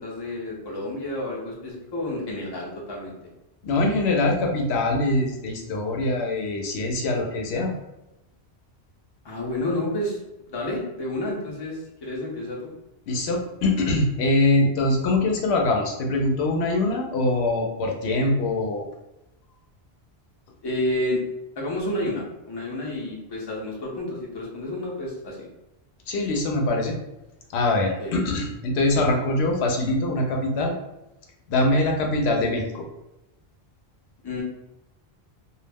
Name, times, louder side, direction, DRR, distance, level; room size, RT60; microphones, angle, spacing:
voice 1, 0.0-3.2 9.2-12.7 20.6-21.2 21.6-25.5 28.0-28.2 34.2-34.4, left 1 dB, 30° left, -3 dB, 0.6 m, -30 dB
voice 2, 3.6-7.7 13.1-18.8 26.1-27.0 27.5-30.7 31.5-32.8, left 2 dB, 85° left, 1 dB, 0.8 m, -23 dB
2.3 x 2.0 x 3.3 m, 0.92 s
omnidirectional pair, 1.1 m